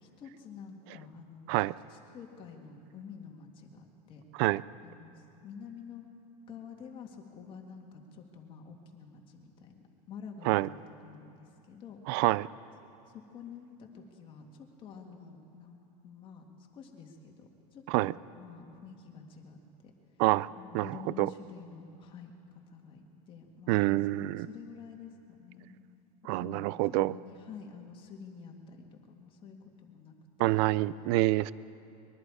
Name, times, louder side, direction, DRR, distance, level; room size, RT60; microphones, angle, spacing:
voice 1, 0.0-1.5 1.9-4.2 4.8-5.1 5.4-6.1 6.5-9.7 10.1-12.0 13.3-15.8 16.0-16.4 16.7-19.6 20.6-22.3 22.7-25.8 26.4-30.1 30.4-30.5, left 6 dB, 25° left, 2 dB, 2.0 m, -49 dB
voice 2, 12.1-12.5 17.9-18.2 20.2-20.5 20.7-21.3 23.7-24.5 26.2-27.2 30.4-31.5, right 18 dB, 40° right, 20 dB, 0.4 m, -27 dB
24.0 x 22.0 x 4.9 m, 2.8 s
supercardioid pair, 170°, 21 cm